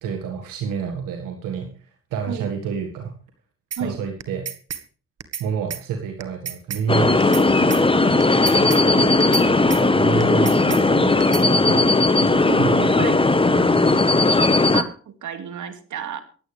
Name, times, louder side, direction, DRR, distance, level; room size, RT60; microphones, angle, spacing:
voice 1, 0.0-1.7 2.1-3.1 3.8-4.5 5.4-11.9 12.2-12.3 12.6-14.3, right 6 dB, 85° right, 4 dB, 1.9 m, -29 dB
sound 1, 3.7-3.8 4.2-4.8 5.2-5.4 5.7-5.8 6.2-6.8 7.2-7.4 7.7-7.8 8.2-8.8 9.2-9.4 9.7-9.8 10.2-10.8 11.2-11.4, right 8 dB, 50° right, 1.6 m, -31 dB
sound 2, 6.9-14.8, left 2 dB, 15° left, 1.3 m, -17 dB
voice 2, 9.3-10.1 12.3-12.6 13.0-13.2 14.7-16.2, right 8 dB, 65° right, 8 dB, 2.5 m, -32 dB
24.5 x 9.2 x 3.4 m, 0.40 s
supercardioid pair, 55°, 32 cm